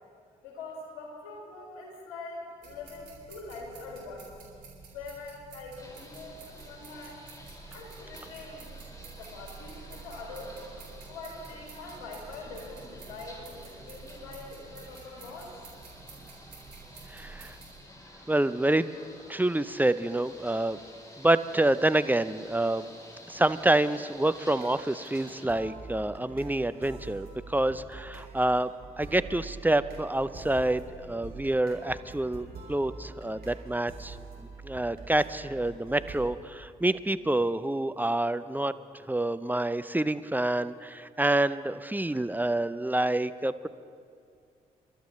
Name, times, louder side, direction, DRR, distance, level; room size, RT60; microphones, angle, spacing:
voice 1, 0.4-4.3 4.9-7.2 7.7-8.7 9.2-10.6 11.1-15.5, left 3 dB, 80° left, -1 dB, 2.4 m, -43 dB
sound 1, 2.6-17.8, right 4 dB, 70° right, 4.4 m, -49 dB
sound 2, 5.8-25.5, left 1 dB, 20° left, 3.9 m, -50 dB
voice 2, 17.1-17.5 18.3-18.9 19.3-20.8 21.2-22.9 23.3-28.7 29.0-38.7 39.1-43.7, right 1 dB, 10° right, 13 dB, 0.6 m, -27 dB
sound 3, 24.6-36.3, right 4 dB, 55° right, 3.1 m, -45 dB
29.5 x 12.5 x 3.2 m, 2.3 s
hypercardioid pair, 40°, 19 cm